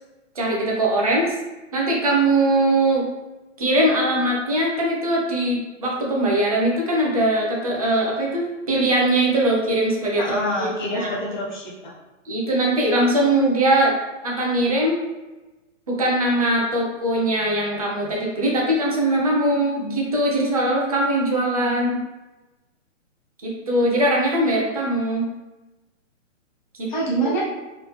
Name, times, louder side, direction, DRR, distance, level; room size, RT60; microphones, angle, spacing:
voice 1, 0.4-1.3 1.7-3.0 3.6-11.1 12.3-13.9 14.2-15.0 15.9-22.0 23.4-25.3 26.8-26.9, right 1 dB, 30° right, -3 dB, 0.6 m, -21 dB
voice 2, 10.1-11.9 26.9-27.4, right 1 dB, 40° left, -4 dB, 1.0 m, -26 dB
3.4 x 3.1 x 3.0 m, 1.1 s
hypercardioid pair, 175°, 38 cm